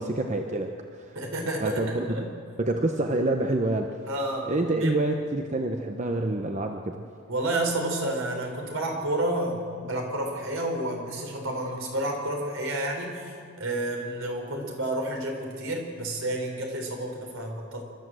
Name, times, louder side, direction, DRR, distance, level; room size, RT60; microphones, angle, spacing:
voice 1, 0.0-1.1 1.6-2.3 2.6-3.9 4.5-7.0, right 2 dB, 35° right, 4 dB, 0.9 m, -27 dB
voice 2, 1.1-2.3 4.1-4.5 4.8-4.9 7.3-17.9, right 1 dB, 75° right, 1 dB, 4.7 m, -30 dB
27.0 x 13.5 x 7.7 m, 2.3 s
head